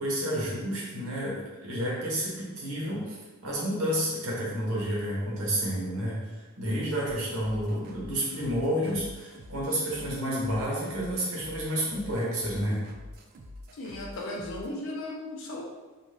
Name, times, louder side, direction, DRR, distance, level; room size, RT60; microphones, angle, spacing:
voice 1, 0.0-12.8, equal, 85° right, -5 dB, 0.9 m, -30 dB
sound 1, 7.0-14.7, left 1 dB, 45° right, 0.3 m, -47 dB
voice 2, 13.7-15.6, left 1 dB, 60° left, -1 dB, 0.4 m, -36 dB
2.5 x 2.3 x 3.1 m, 1.3 s
head